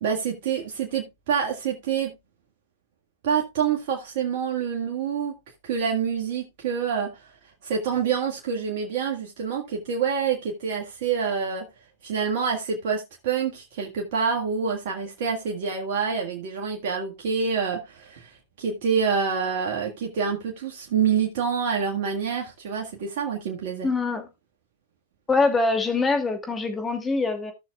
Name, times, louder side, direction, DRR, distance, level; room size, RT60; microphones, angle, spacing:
voice 1, 0.0-2.1 3.2-5.3 5.6-7.2 7.6-11.7 12.0-23.9, right 6 dB, 60° right, 1.8 m, -27 dB
voice 2, 23.8-24.3 25.3-27.5, left 3 dB, 20° left, 2.6 m, -24 dB
15.5 x 6.2 x 2.4 m
hypercardioid pair, 105°, 0 cm